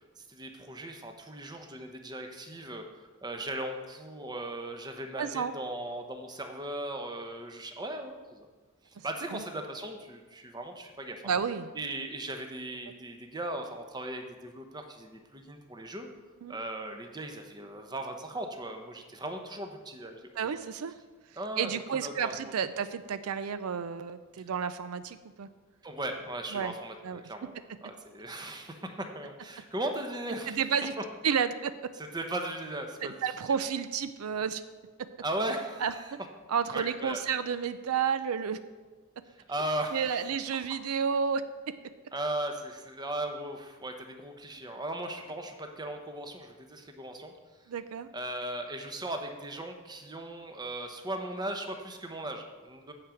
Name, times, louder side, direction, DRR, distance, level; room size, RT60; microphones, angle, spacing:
voice 1, 0.2-2.8 3.2-8.5 8.9-11.2 11.7-16.1 16.5-20.5 21.4-22.3 25.8-30.6 32.0-33.2 33.5-33.6 35.2-36.1 36.7-37.2 39.5-40.3 42.1-47.3 48.1-52.9, right 1 dB, 20° right, 5 dB, 0.8 m, -37 dB
voice 2, 5.2-5.5 9.3-9.4 11.2-11.7 16.4-16.6 20.4-20.9 21.6-25.5 26.5-26.7 27.0-27.2 30.5-30.9 31.2-31.7 33.2-34.6 35.8-35.9 36.5-38.6 39.9-41.4 47.7-48.1, right 7 dB, 80° right, 12 dB, 0.4 m, -31 dB
8.7 x 5.0 x 7.6 m, 1.3 s
head